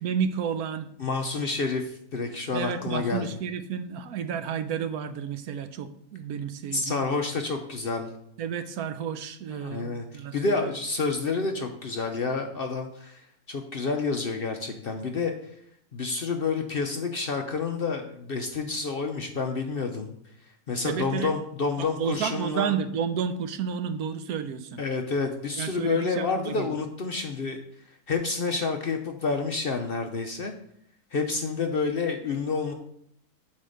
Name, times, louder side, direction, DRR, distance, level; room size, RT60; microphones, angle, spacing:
voice 1, 0.0-0.9 2.5-7.1 8.4-10.7 20.8-21.3 21.8-24.8 25.6-26.7, right 7 dB, 75° right, 10 dB, 1.1 m, -31 dB
voice 2, 1.0-3.3 6.7-8.1 9.5-13.2 13.5-15.3 15.9-20.1 20.7-22.7 24.8-27.6 28.1-30.5 31.1-32.7, left 4 dB, 50° left, 4 dB, 0.7 m, -29 dB
8.4 x 3.6 x 6.5 m, 0.70 s
omnidirectional pair, 1.6 m